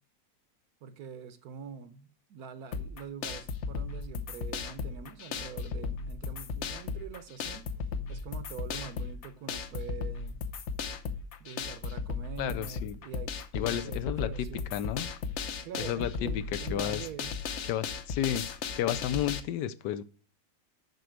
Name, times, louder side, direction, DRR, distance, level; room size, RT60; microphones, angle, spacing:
voice 1, 0.8-7.7 8.1-10.4 11.4-14.7 15.6-17.4, right 8 dB, 65° right, 1.2 m, -44 dB
sound 1, 2.7-19.4, left 5 dB, 55° left, 0.8 m, -36 dB
voice 2, 12.4-13.0 13.5-14.3 14.7-15.1 15.8-16.4 16.7-17.0 17.7-18.5 18.7-20.0, left 11 dB, 75° left, 1.2 m, -32 dB
6.8 x 6.1 x 6.4 m
omnidirectional pair, 1.9 m